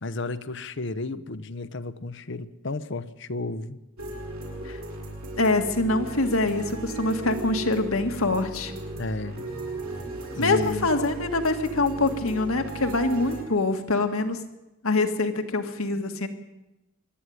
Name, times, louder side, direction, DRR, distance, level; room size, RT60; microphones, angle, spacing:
voice 1, 0.0-3.8 9.0-9.4 10.4-10.9, left 2 dB, 55° left, 0.9 m, -32 dB
sound 1, 4.0-13.4, right 2 dB, 85° right, 7.7 m, -36 dB
voice 2, 5.4-8.7 10.4-14.4 14.8-16.3, left 2 dB, 85° left, 1.8 m, -24 dB
24.0 x 11.5 x 9.4 m
head